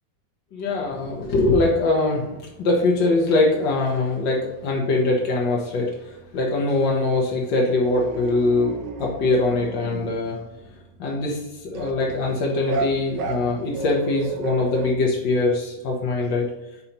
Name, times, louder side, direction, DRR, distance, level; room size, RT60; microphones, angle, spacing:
voice 1, 0.5-10.4 11.0-16.5, left 2 dB, 90° left, -2 dB, 1.8 m, -22 dB
sound 1, 7.8-10.3 11.7-14.9, right 4 dB, 85° right, 1.4 m, -32 dB
8.8 x 3.0 x 5.3 m, 0.93 s
omnidirectional pair, 1.9 m